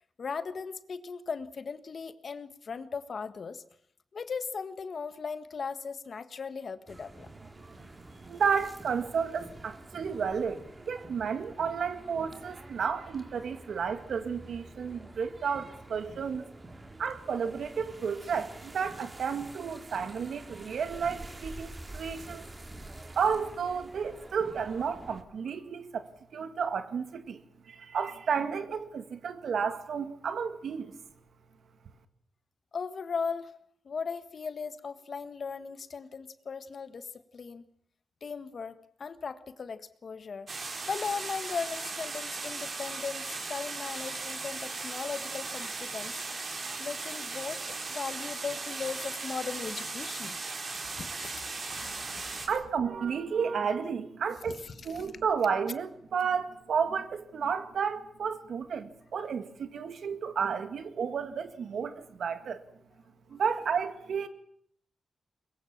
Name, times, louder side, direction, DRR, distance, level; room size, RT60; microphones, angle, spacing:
voice 1, 0.0-3.6 4.1-7.3 32.7-33.5 33.8-37.6 38.2-40.5 40.8-46.2 46.8-47.6 47.9-52.5 54.5-55.1, left 5 dB, 55° left, 1.5 m, -38 dB
sound 1, 6.9-25.2, right 2 dB, 25° right, 2.5 m, -48 dB
voice 2, 8.3-16.4 17.0-22.4 23.2-27.4 27.7-31.0 52.0-52.2 52.5-54.6 54.8-62.6 63.3-64.3, right 6 dB, 75° right, 1.9 m, -32 dB
sound 2, 40.5-52.5, right 3 dB, 45° right, 4.5 m, -37 dB
22.5 x 22.0 x 7.3 m
wide cardioid pair, 115°, 0 cm